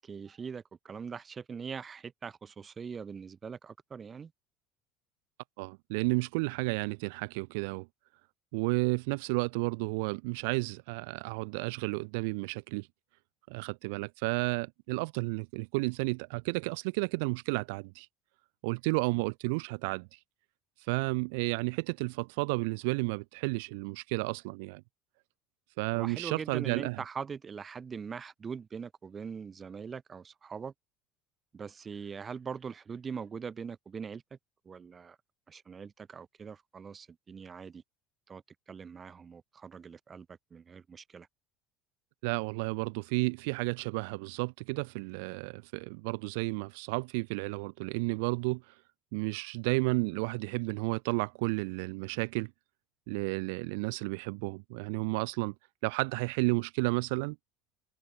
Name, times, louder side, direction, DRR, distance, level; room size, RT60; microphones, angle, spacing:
voice 1, 0.0-4.3 25.9-30.7 31.5-34.2 34.6-35.2 35.5-37.8 38.3-38.4 38.7-40.3 40.5-41.3, right 6 dB, 35° right, 1.4 m, -42 dB
voice 2, 5.6-7.9 8.5-12.9 13.5-18.1 18.6-20.2 20.8-24.8 25.8-27.0 42.2-48.7 49.1-52.5 53.1-55.5 55.8-57.4, right 29 dB, 70° right, 0.9 m, -32 dB
hypercardioid pair, 70°, 0 cm